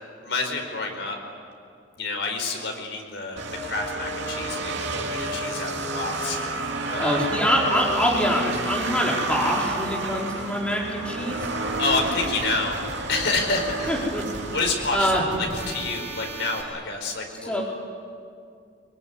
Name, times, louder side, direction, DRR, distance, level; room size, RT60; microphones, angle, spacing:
voice 1, 0.2-1.2 2.0-6.4 6.9-7.2 11.8-12.8 13.1-14.1 14.5-17.6, left 3 dB, 75° left, 3 dB, 4.8 m, -28 dB
sound 1, 3.4-16.4, right 2 dB, 75° right, 2.8 m, -31 dB
voice 2, 7.0-11.5 13.9-14.2 14.9-15.2 17.4-17.6, equal, 5° left, -4 dB, 4.6 m, -24 dB
sound 2, 11.4-16.6, right 2 dB, 45° right, 5.0 m, -38 dB
24.0 x 23.5 x 9.8 m, 2.3 s
head